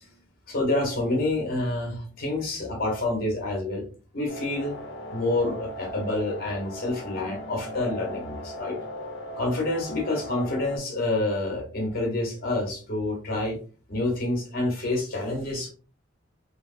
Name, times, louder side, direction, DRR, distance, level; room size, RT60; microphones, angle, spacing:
voice 1, 0.5-3.9 4.1-4.7 5.1-8.8 9.4-13.6 13.9-15.7, left 2 dB, 55° left, 0 dB, 1.1 m, -28 dB
sound 1, 4.3-10.8, equal, 80° left, 0.6 m, -38 dB
3.2 x 2.0 x 2.6 m, 0.38 s
head